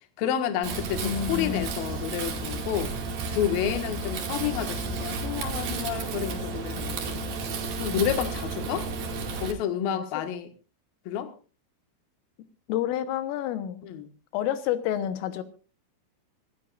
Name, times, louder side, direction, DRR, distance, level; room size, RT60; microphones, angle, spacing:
voice 1, 0.2-2.9 3.3-7.2 7.8-8.9 9.4-10.5 11.1-11.3 13.8-14.1, left 9 dB, 60° left, 8 dB, 2.9 m, -30 dB
Wind, 0.6-9.5, right 3 dB, 55° right, 3.6 m, -32 dB
voice 2, 1.0-1.7 9.9-10.1 12.7-13.8 14.3-15.4, left 11 dB, 90° left, 10 dB, 3.8 m, -29 dB
26.0 x 14.0 x 2.5 m, 0.35 s
omnidirectional pair, 5.7 m